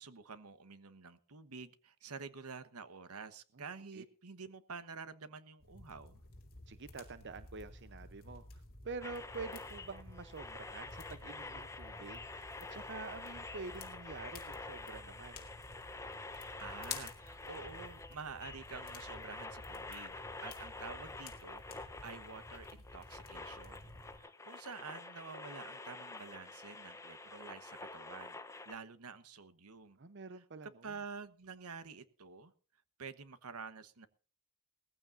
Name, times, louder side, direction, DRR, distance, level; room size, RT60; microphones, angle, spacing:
voice 1, 0.0-6.2 16.3-20.2 20.4-23.9 24.2-28.4 28.7-30.0 30.8-32.5 33.0-34.1, right 5 dB, 80° right, 13 dB, 1.2 m, -49 dB
sound 1, 5.6-24.2, left 4 dB, 45° left, 2.8 m, -52 dB
voice 2, 6.7-15.4 30.0-30.9, right 4 dB, 55° right, 12 dB, 0.8 m, -47 dB
sound 2, 9.0-28.7, left 3 dB, 15° left, 0.9 m, -48 dB
19.5 x 15.0 x 2.6 m, 0.41 s
head